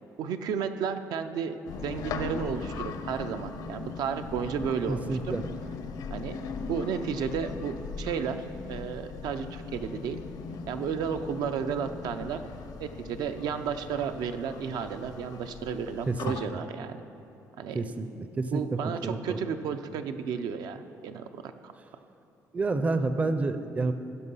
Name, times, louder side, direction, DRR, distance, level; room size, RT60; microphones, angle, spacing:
voice 1, 0.2-5.1 6.1-10.2 10.7-12.4 12.8-17.0 17.6-17.8 18.5-21.7, right 7 dB, 80° right, 8 dB, 0.5 m, -33 dB
sound 1, 1.7-16.4, left 5 dB, 75° left, 0.7 m, -39 dB
voice 2, 4.9-5.5 16.1-16.4 17.7-18.1 18.4-19.4 22.5-23.9, right 3 dB, 20° right, 9 dB, 0.4 m, -29 dB
15.5 x 6.0 x 5.6 m, 2.8 s
cardioid pair, 145°, 7 cm